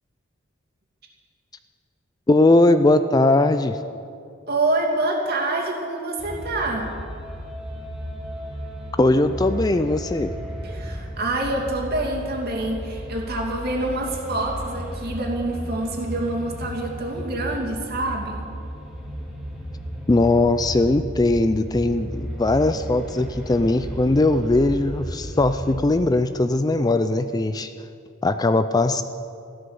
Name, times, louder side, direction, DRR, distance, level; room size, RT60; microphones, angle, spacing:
voice 1, 2.3-3.8 9.0-10.3 20.1-27.7 28.2-29.0, left 2 dB, 20° left, 10 dB, 0.4 m, -19 dB
voice 2, 4.5-6.9 10.6-18.4, right 2 dB, 50° right, -1 dB, 2.6 m, -26 dB
sound 1, 6.2-25.8, equal, 5° right, 2.8 m, -34 dB
14.5 x 12.5 x 6.9 m, 2.5 s
head